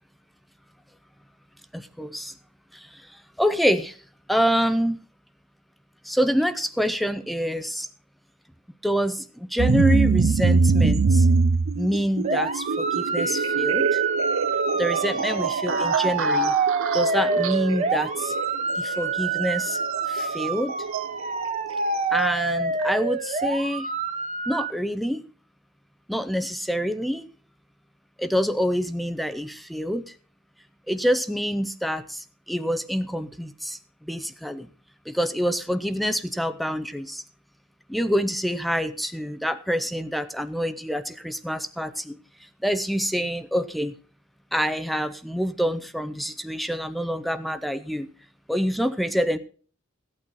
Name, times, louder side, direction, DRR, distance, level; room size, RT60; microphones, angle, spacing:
voice 1, 1.7-2.3 2.7-4.0 4.3-5.0 6.0-7.9 8.8-11.3 11.7-14.0 14.8-16.5 16.9-18.3 18.8-19.8 20.1-20.8 22.1-23.9 24.5-25.2 26.1-27.3 28.2-30.1 30.9-34.7 35.1-37.2 37.9-42.2 42.6-43.9 44.5-48.1 48.5-49.4, equal, ahead, 11 dB, 0.5 m, -26 dB
sound 1, 9.6-22.3, right 4 dB, 80° right, 0.6 m, -24 dB
sound 2, 12.2-24.7, right 4 dB, 35° right, 0.9 m, -27 dB
15.5 x 8.8 x 4.1 m, 0.41 s
head